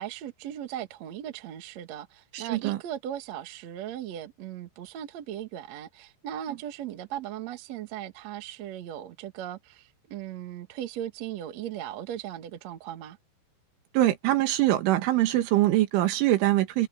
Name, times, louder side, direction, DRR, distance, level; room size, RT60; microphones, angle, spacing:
voice 1, 0.0-13.2, right 11 dB, 60° right, 1.9 m, -38 dB
voice 2, 2.3-2.8 13.9-16.9, right 15 dB, 90° right, 4.2 m, -23 dB
omnidirectional pair, 5.4 m